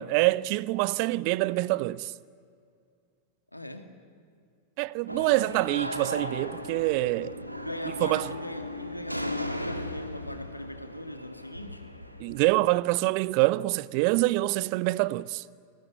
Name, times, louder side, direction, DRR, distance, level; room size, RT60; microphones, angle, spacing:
voice 1, 0.0-2.1 4.8-7.4 8.0-8.3 12.2-15.4, right 19 dB, 45° right, 0.6 m, -25 dB
voice 2, 3.5-3.9 7.6-11.9, left 1 dB, 85° left, 2.1 m, -40 dB
sound 1, 5.1-12.5, left 1 dB, 90° right, 1.6 m, -37 dB
29.0 x 19.5 x 9.7 m
figure-of-eight pair, 90°, 0 cm